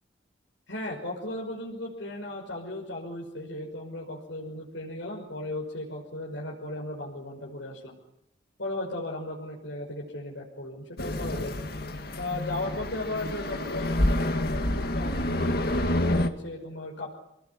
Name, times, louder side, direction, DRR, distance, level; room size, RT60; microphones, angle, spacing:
voice 1, 0.7-8.0 8.6-11.6 12.1-15.4 15.9-17.1, left 1 dB, 75° left, -2 dB, 6.1 m, -36 dB
sound 1, 11.0-16.3, left 1 dB, 55° left, 2.2 m, -28 dB
28.0 x 20.0 x 9.9 m, 0.78 s
head